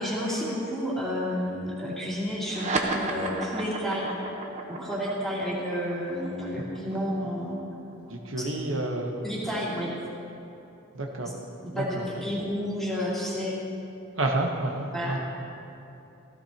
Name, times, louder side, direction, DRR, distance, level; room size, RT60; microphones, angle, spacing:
voice 1, 0.0-4.2 4.7-7.5 9.2-9.9 11.2-11.3 11.6-13.6 14.9-15.2, equal, ahead, -8 dB, 2.8 m, -31 dB
sound 1, 2.4-9.3, right 2 dB, 35° right, 0.9 m, -34 dB
voice 2, 8.1-9.2 10.9-11.3 11.7-12.2 14.2-15.2, right 2 dB, 65° right, 0 dB, 1.0 m, -29 dB
16.0 x 15.0 x 2.9 m, 2.9 s
head